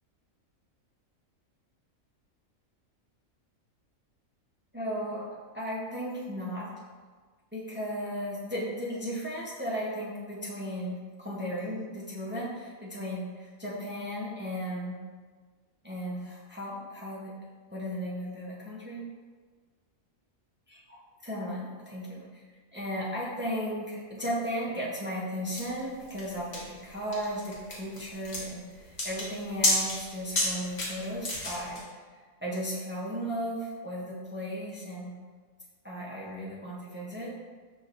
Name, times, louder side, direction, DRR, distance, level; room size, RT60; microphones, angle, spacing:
voice 1, 4.7-6.7 7.5-15.0 15.8-17.3 17.7-19.1 20.9-22.4 22.7-31.8 32.4-35.1 35.8-37.3, equal, 15° right, -6 dB, 0.4 m, -35 dB
sound 1, 25.6-31.8, left 1 dB, 55° left, 1.3 m, -31 dB
6.3 x 2.9 x 2.5 m, 1.4 s
omnidirectional pair, 1.4 m